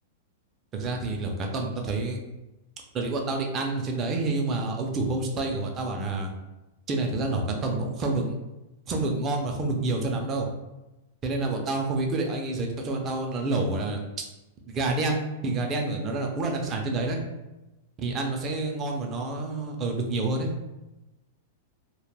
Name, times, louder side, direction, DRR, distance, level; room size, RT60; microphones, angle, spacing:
voice 1, 0.7-2.2 2.9-6.3 6.9-8.4 8.9-10.5 11.2-14.3 14.7-17.2 18.0-20.5, right 2 dB, 25° right, 2 dB, 0.4 m, -28 dB
2.2 x 2.0 x 3.2 m, 1.0 s
hypercardioid pair, 140°, 0 cm